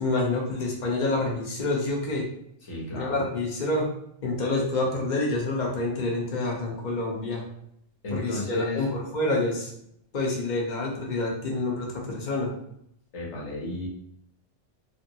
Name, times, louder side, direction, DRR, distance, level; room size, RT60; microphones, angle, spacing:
voice 1, 0.0-2.3 2.9-3.8 4.2-7.4 8.1-9.7 10.1-12.5, left 2 dB, 45° left, -1 dB, 0.8 m, -27 dB
voice 2, 2.6-3.2 8.0-8.9 13.1-13.9, left 2 dB, 80° left, -4 dB, 1.3 m, -33 dB
2.7 x 2.7 x 2.7 m, 0.73 s
omnidirectional pair, 1.2 m